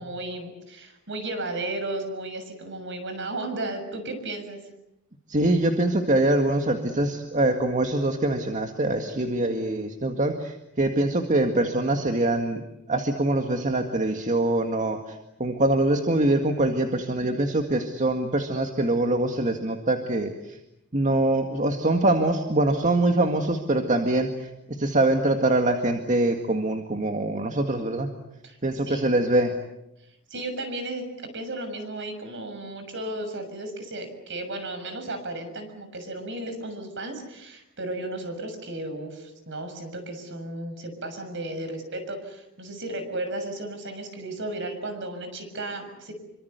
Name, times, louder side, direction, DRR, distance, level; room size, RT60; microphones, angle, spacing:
voice 1, 0.0-4.6 17.1-17.3 28.4-28.6 28.9-29.1 30.3-31.1 31.3-46.2, right 2 dB, 55° right, 8 dB, 6.9 m, -34 dB
voice 2, 5.3-12.6 12.9-20.6 20.9-24.5 24.8-28.1 28.6-29.5, right 2 dB, 35° right, 4 dB, 2.0 m, -24 dB
27.5 x 25.0 x 8.2 m, 0.86 s
head